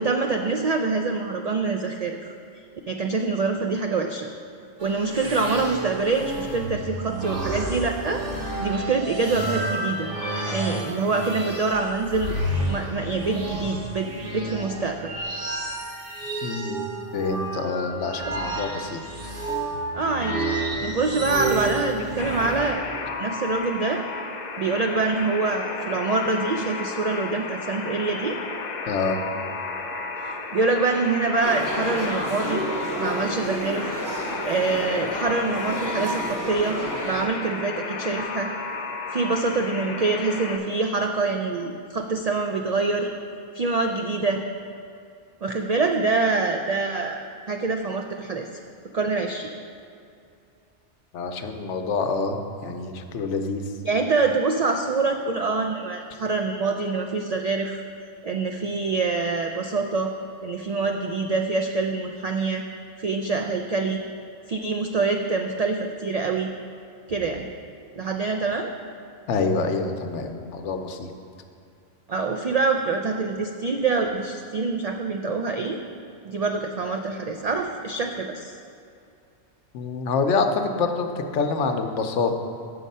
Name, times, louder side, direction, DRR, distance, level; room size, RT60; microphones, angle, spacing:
voice 1, 0.0-2.2 2.9-4.3 4.8-8.2 8.6-10.1 10.5-12.3 12.7-15.1 19.9-20.4 20.8-22.8 23.2-24.0 24.6-28.4 30.2-32.6 33.0-34.0 34.4-38.5 39.1-43.1 43.5-44.5 45.4-47.2 47.5-48.5 48.9-49.5 53.8-57.8 58.2-60.1 60.4-62.6 63.0-64.0 64.5-66.5 67.1-67.5 68.0-68.7 72.1-75.8 76.2-78.5, right 3 dB, 90° right, 4 dB, 0.3 m, -25 dB
sound 1, 4.8-22.7, right 1 dB, 50° right, 1.4 m, -30 dB
voice 2, 16.4-16.9 17.1-19.0 28.9-29.2 51.1-53.6 69.3-71.1 79.7-81.1 81.3-82.4, left 4 dB, 80° left, 6 dB, 1.0 m, -26 dB
Alarm, 22.2-40.6, left 4 dB, 50° left, 0.5 m, -33 dB
sound 2, 31.4-37.3, right 1 dB, 20° right, 0.7 m, -30 dB
7.3 x 6.6 x 5.4 m, 2.5 s
omnidirectional pair, 1.2 m